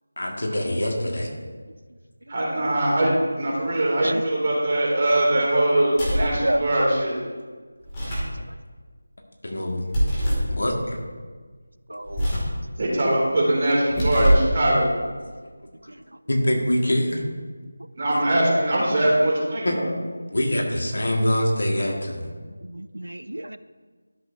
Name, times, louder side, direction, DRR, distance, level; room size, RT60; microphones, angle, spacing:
voice 1, 0.2-1.3 8.0-8.4 9.4-9.9 10.5-11.0 15.4-15.9 16.3-17.2 19.6-19.8 20.3-22.3, left 1 dB, 65° left, 0 dB, 1.9 m, -25 dB
voice 2, 2.3-7.2 12.8-14.9 17.9-19.8, right 1 dB, 35° right, -4 dB, 2.7 m, -22 dB
sound 1, 5.9-6.4 7.8-8.4 9.9-10.5 12.1-12.6 13.8-14.5, equal, 20° left, 2.4 m, -23 dB
voice 3, 6.2-6.9 11.9-12.3 22.7-23.6, right 1 dB, 85° right, 13 dB, 0.4 m, -29 dB
12.5 x 6.9 x 2.7 m, 1.5 s
figure-of-eight pair, 165°, 0 cm